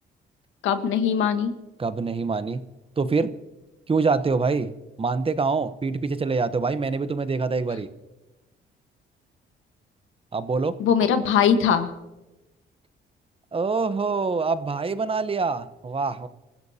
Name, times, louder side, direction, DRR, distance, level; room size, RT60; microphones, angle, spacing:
voice 1, 0.6-1.5 10.8-11.9, left 7 dB, 85° left, 8 dB, 1.4 m, -21 dB
voice 2, 1.8-2.6 3.0-3.3 3.9-4.7 5.0-7.9 10.3-10.7 13.5-16.3, right 4 dB, 30° right, 12 dB, 0.9 m, -25 dB
26.0 x 15.5 x 2.8 m, 1.0 s
cardioid pair, 90°, 20 cm